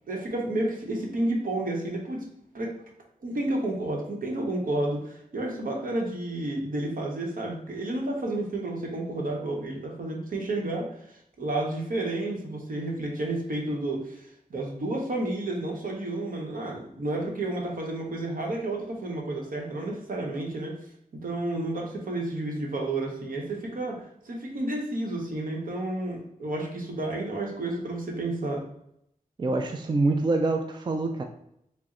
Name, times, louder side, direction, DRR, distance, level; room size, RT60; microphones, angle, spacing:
voice 1, 0.1-2.2 2.5-2.7 3.2-20.8 21.1-28.6, right 2 dB, 75° right, 0 dB, 0.9 m, -31 dB
voice 2, 29.4-31.2, right 2 dB, 30° right, 4 dB, 0.4 m, -25 dB
4.0 x 2.0 x 3.7 m, 0.75 s
cardioid pair, 60°, 15 cm